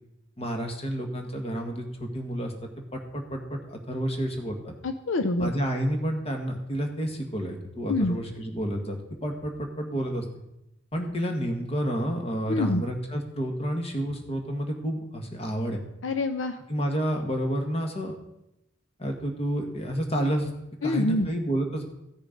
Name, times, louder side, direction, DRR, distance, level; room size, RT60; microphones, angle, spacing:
voice 1, 0.4-4.7 5.4-10.2 10.9-15.8 16.7-18.2 19.0-20.5 20.8-21.8, equal, 30° left, 3 dB, 1.7 m, -30 dB
voice 2, 4.8-5.5 7.9-8.2 12.5-12.8 16.0-16.6 20.8-21.3, left 2 dB, 70° left, 9 dB, 0.6 m, -26 dB
14.5 x 6.5 x 5.2 m, 0.86 s
head